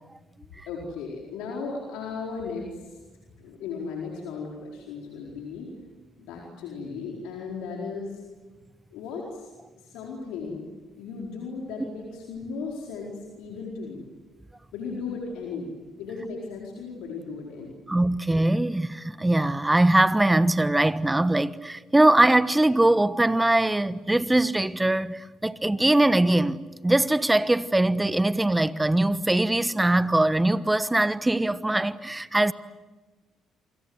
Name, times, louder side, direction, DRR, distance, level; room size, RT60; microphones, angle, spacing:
voice 1, 0.7-3.0 3.4-5.7 6.2-8.2 8.9-9.5 9.8-10.6 11.0-14.0 14.7-17.8, left 4 dB, 80° left, 4.5 m, -36 dB
voice 2, 17.9-32.5, right 1 dB, 15° right, 1.2 m, -22 dB
28.0 x 25.5 x 8.0 m
supercardioid pair, 65°, 0 cm